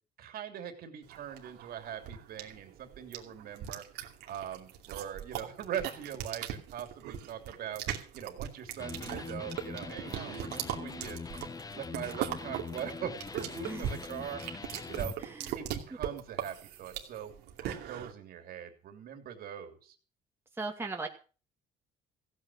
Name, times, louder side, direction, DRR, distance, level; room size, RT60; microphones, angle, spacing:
voice 1, 0.2-3.8 4.3-7.8 8.1-11.2 11.7-14.4 14.9-15.1 15.5-17.3 17.6-19.9, right 9 dB, 65° right, 6 dB, 3.2 m, -41 dB
sound 1, 1.1-18.1, right 10 dB, 85° right, 2.6 m, -39 dB
Electric guitar, 8.8-15.2, left 4 dB, 20° left, 0.9 m, -42 dB
voice 2, 15.2-15.5 20.5-21.1, right 3 dB, 15° right, 1 dB, 2.2 m, -37 dB
15.5 x 9.1 x 6.3 m, 0.37 s
cardioid pair, 110°, 17 cm